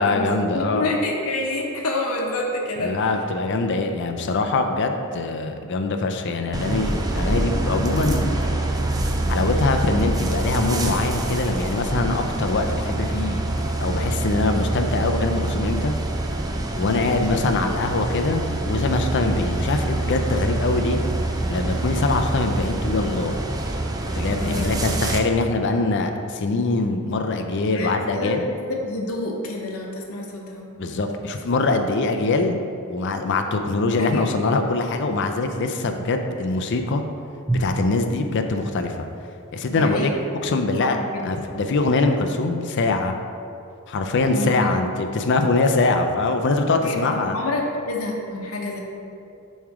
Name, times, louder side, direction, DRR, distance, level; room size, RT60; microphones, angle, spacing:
voice 1, 0.0-0.9 2.8-8.3 9.3-15.9 16.8-21.0 21.5-23.4 24.2-28.5 30.8-32.6 32.9-37.0 37.5-39.1 39.5-40.1 40.4-41.0 41.2-43.1 43.9-47.4, left 3 dB, 55° left, 5 dB, 0.4 m, -23 dB
voice 2, 0.5-3.1 16.8-17.2 24.4-24.8 27.7-30.7 34.0-34.3 39.7-40.3 40.8-41.3 44.3-44.7 46.8-48.8, left 2 dB, 90° left, 0 dB, 0.8 m, -28 dB
sound 1, 6.5-25.2, right 2 dB, 20° right, 0.4 m, -25 dB
Drum, 37.5-40.4, right 1 dB, ahead, 1.1 m, -32 dB
7.1 x 3.2 x 4.8 m, 2.6 s
head